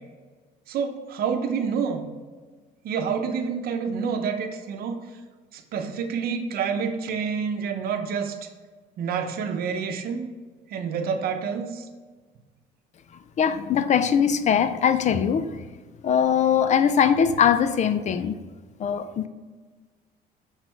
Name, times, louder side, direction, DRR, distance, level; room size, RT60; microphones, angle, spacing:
voice 1, 0.7-2.1 2.8-5.0 5.5-8.3 9.0-10.2 10.7-11.9, right 6 dB, 65° right, 5 dB, 0.8 m, -28 dB
voice 2, 13.4-15.6 16.0-18.4 18.8-19.3, left 7 dB, 45° left, 11 dB, 0.5 m, -21 dB
6.0 x 4.1 x 4.6 m, 1.4 s
cardioid pair, 110°, 17 cm